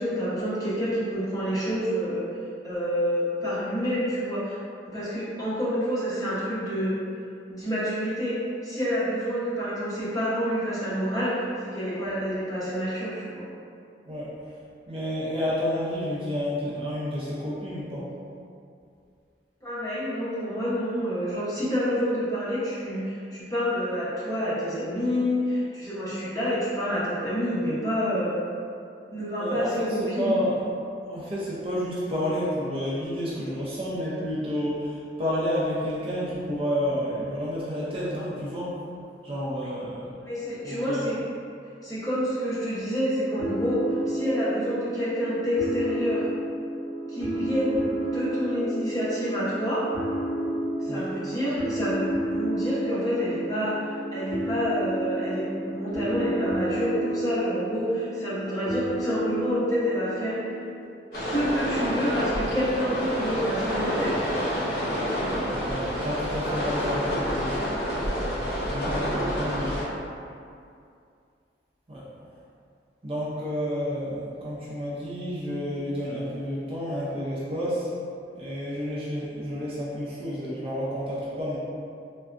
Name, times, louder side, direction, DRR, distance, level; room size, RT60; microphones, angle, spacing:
voice 1, 0.0-2.2 2.6-4.6 4.8-6.9 7.5-8.3 8.6-13.4 19.6-28.3 29.1-30.4 40.3-41.2 41.8-46.2 47.1-47.8 48.1-49.8 50.8-60.5 61.1-64.2, equal, 20° left, -11 dB, 0.9 m, -28 dB
voice 2, 14.9-18.1 29.4-30.6 31.1-38.8 39.2-40.1 40.6-41.1 50.9-51.1 65.3-67.7 68.4-69.7 71.9-72.0 73.0-77.9 78.3-81.6, equal, 30° right, -8 dB, 0.5 m, -30 dB
sound 1, 43.4-60.8, right 1 dB, 5° left, 1.5 m, -31 dB
sound 2, 61.1-69.8, equal, 55° left, 1.0 m, -28 dB
3.5 x 2.2 x 2.5 m, 2.4 s
head